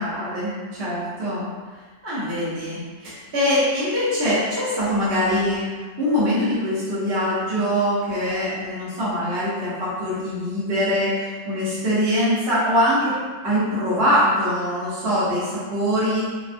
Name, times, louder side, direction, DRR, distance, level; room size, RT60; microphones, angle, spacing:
voice 1, 0.0-1.5 2.0-13.2 13.4-16.2, equal, 55° right, -11 dB, 1.2 m, -23 dB
3.6 x 2.2 x 2.5 m, 1.4 s
omnidirectional pair, 1.2 m